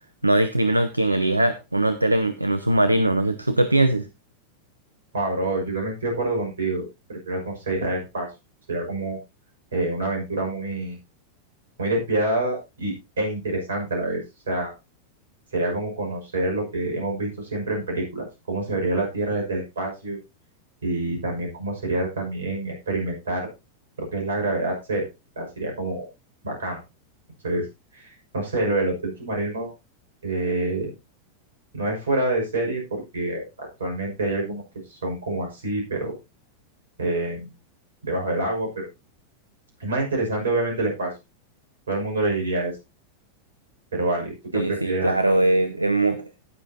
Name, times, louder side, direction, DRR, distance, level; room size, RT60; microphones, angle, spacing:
voice 1, 0.2-4.1 44.5-46.2, right 1 dB, 85° right, 12 dB, 0.7 m, -21 dB
voice 2, 5.1-8.3 8.7-9.2 9.7-11.0 11.8-14.2 14.5-14.7 15.5-20.2 20.8-23.5 24.0-25.1 25.4-26.1 26.4-26.8 27.4-27.7 27.9-28.1 28.3-29.7 30.2-30.9 31.7-36.1 37.0-37.5 38.0-38.9 39.8-41.1 41.9-42.7 43.9-45.1, right 2 dB, 65° right, 1 dB, 5.9 m, -27 dB
18.0 x 6.9 x 2.9 m, 0.26 s
figure-of-eight pair, 90°, 0 cm